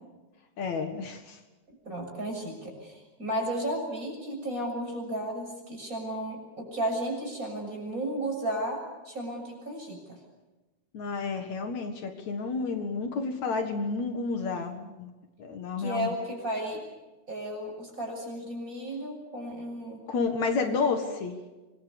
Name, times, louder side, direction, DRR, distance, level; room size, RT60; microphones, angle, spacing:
voice 1, 0.6-1.4 10.9-15.1 15.4-16.2 20.1-21.4, left 4 dB, 65° left, 6 dB, 3.0 m, -30 dB
voice 2, 1.7-10.2 15.8-16.8 17.3-20.0 20.6-20.9, right 1 dB, 25° right, 2 dB, 7.3 m, -34 dB
26.0 x 22.5 x 6.9 m, 1.2 s
omnidirectional pair, 3.5 m